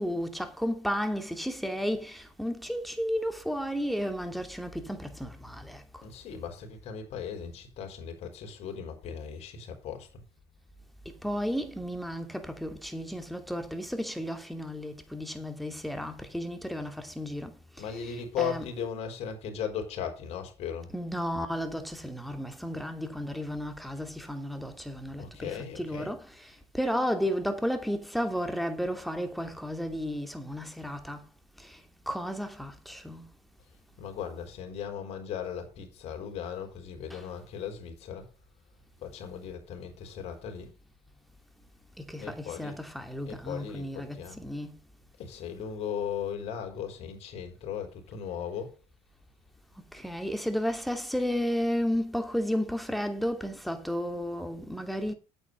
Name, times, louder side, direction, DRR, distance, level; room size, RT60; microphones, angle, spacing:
voice 1, 0.0-5.8 11.0-17.8 18.4-18.6 20.9-31.2 31.6-31.8 32.1-33.3 37.1-37.2 42.0-44.8 49.9-55.1, equal, ahead, 2.8 m, -33 dB
voice 2, 6.0-10.2 17.8-20.9 25.2-26.1 34.0-38.3 39.0-40.7 42.2-42.8 43.3-44.4 45.2-48.7, left 8 dB, 60° left, 4.0 m, -37 dB
8.9 x 8.4 x 5.3 m
supercardioid pair, 75°, 12 cm